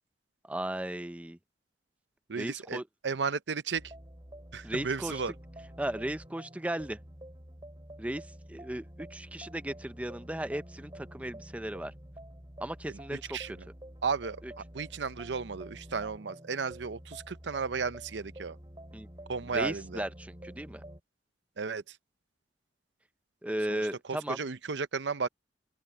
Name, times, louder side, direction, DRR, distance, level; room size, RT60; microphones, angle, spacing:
voice 1, 0.4-1.4 2.4-2.8 4.6-5.2 5.8-7.0 8.0-11.9 12.6-13.4 14.4-14.5 18.9-19.1 19.5-20.8 23.4-24.4, right 1 dB, 10° right, 0.5 m, -36 dB
voice 2, 2.3-3.8 4.5-5.3 13.1-13.7 14.0-18.6 19.3-20.0 21.6-22.0 23.7-23.8 24.1-25.3, right 5 dB, 75° right, 0.7 m, -34 dB
sound 1, 3.7-21.0, right 1 dB, 25° right, 4.0 m, -49 dB
open air
head